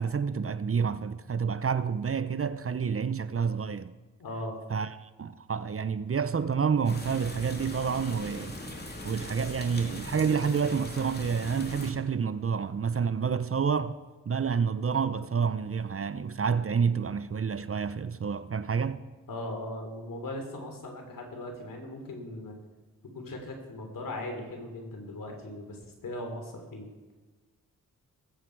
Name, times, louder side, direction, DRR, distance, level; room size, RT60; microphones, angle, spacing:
voice 1, 0.0-3.9 4.7-8.6 9.0-14.0 14.3-19.0, right 6 dB, 40° right, 0.8 m, -29 dB
voice 2, 4.2-4.6 19.3-22.6 23.1-26.9, left 1 dB, 70° left, 3.4 m, -39 dB
sound 1, 6.8-11.9, left 1 dB, 30° left, 2.7 m, -40 dB
20.0 x 8.4 x 4.8 m
supercardioid pair, 45°, 34 cm